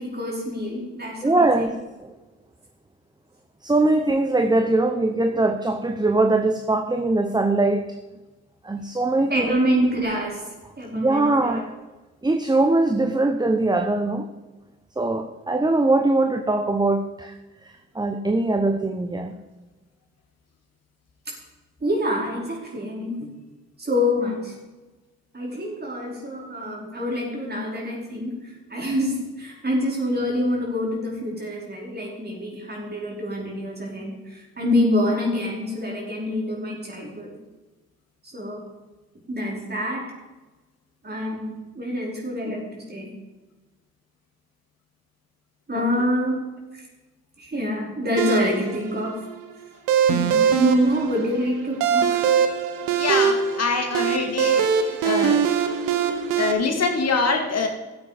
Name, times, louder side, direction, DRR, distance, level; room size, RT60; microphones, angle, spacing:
voice 1, 0.0-1.7 9.3-10.5 10.8-11.7 21.8-23.3 23.8-24.5 25.3-37.4 38.2-38.6 39.3-40.1 41.0-43.1 45.7-46.5 46.7-46.9 47.4-49.2 50.1-52.3, left 1 dB, 30° right, -2 dB, 4.9 m, -26 dB
voice 2, 1.2-1.7 3.6-7.9 8.6-9.6 10.9-11.6 12.2-14.3 15.0-17.3 17.9-19.3, right 2 dB, 15° right, 7 dB, 1.0 m, -21 dB
sound 1, 48.2-56.5, right 7 dB, 85° right, 1.1 m, -22 dB
voice 3, 53.0-55.4 56.4-57.7, left 4 dB, 50° left, 4 dB, 2.2 m, -24 dB
13.5 x 8.2 x 5.1 m, 1.2 s
supercardioid pair, 55°, 32 cm